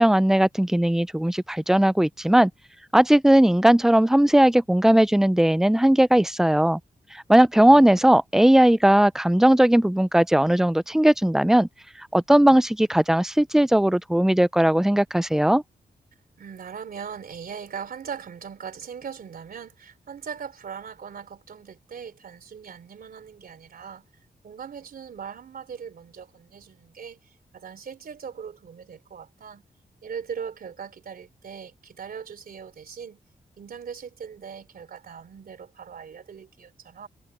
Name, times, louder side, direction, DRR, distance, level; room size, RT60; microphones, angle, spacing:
voice 1, 0.0-2.5 2.9-6.8 7.3-11.7 12.1-15.6, right 1 dB, 5° right, 0.3 m, -18 dB
voice 2, 7.6-8.0 16.4-24.0 24.4-29.6 30.0-33.2 33.6-37.1, right 7 dB, 70° right, 3.5 m, -40 dB
wide cardioid pair, 145°, 16 cm